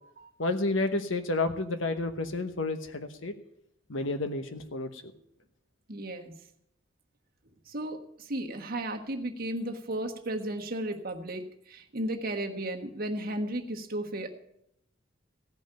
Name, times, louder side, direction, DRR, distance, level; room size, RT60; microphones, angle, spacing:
voice 1, 0.4-3.3 3.9-5.1, left 2 dB, 80° left, 8 dB, 1.0 m, -30 dB
voice 2, 5.9-6.3 7.7-14.3, right 1 dB, 50° right, 3 dB, 1.4 m, -34 dB
15.5 x 5.3 x 8.9 m, 0.76 s
head